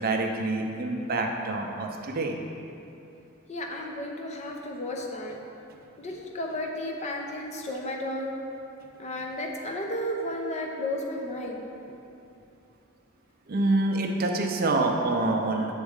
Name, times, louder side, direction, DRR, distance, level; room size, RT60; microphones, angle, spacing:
voice 1, 0.0-2.4 13.5-15.7, right 2 dB, 45° right, 2 dB, 0.5 m, -26 dB
voice 2, 3.5-5.3 6.0-8.3 9.0-11.6, left 1 dB, 30° left, 1 dB, 0.6 m, -33 dB
7.1 x 4.2 x 3.6 m, 2.8 s
head